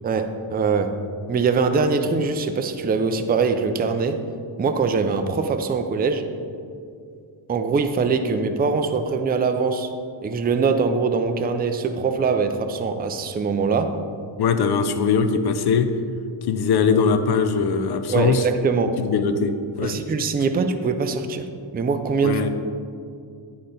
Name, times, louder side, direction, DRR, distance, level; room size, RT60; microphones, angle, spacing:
voice 1, 0.0-1.0 1.3-4.2 4.6-6.3 7.5-9.9 10.2-14.0 18.1-19.0 19.8-21.5 21.7-22.4, right 5 dB, 20° right, 7 dB, 0.3 m, -22 dB
voice 2, 14.4-15.9 16.5-18.4 19.0-20.0 22.2-22.5, left 5 dB, 50° left, 9 dB, 0.5 m, -21 dB
9.8 x 3.9 x 3.8 m, 2.4 s
cardioid pair, 95°, 50 cm